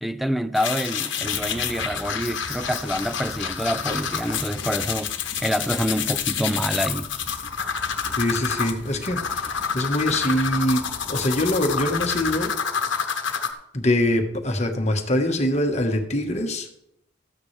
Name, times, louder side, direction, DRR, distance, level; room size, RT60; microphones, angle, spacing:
voice 1, 0.0-7.1, equal, ahead, 0.4 m, -27 dB
sound 1, 0.5-13.5, left 7 dB, 70° left, 1.1 m, -28 dB
sound 2, 1.2-12.4, equal, 35° right, 2.3 m, -43 dB
voice 2, 8.2-12.5 13.7-16.7, left 1 dB, 35° left, 1.3 m, -24 dB
13.5 x 9.3 x 3.3 m
head